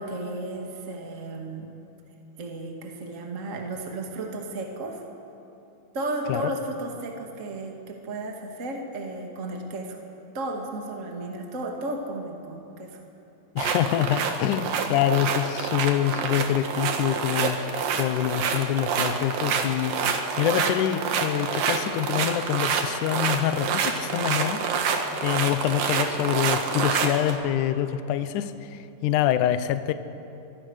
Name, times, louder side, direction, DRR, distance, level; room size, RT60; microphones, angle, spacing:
voice 1, 0.0-1.7 2.4-5.0 5.9-10.0 10.3-13.0, right 2 dB, 25° right, 2 dB, 2.0 m, -34 dB
voice 2, 13.6-17.6 17.9-24.6 25.2-29.9, left 11 dB, 70° left, 11 dB, 2.1 m, -26 dB
sound 1, 13.6-27.4, right 6 dB, 70° right, 3.3 m, -27 dB
28.0 x 24.0 x 6.5 m, 2.9 s
omnidirectional pair, 4.3 m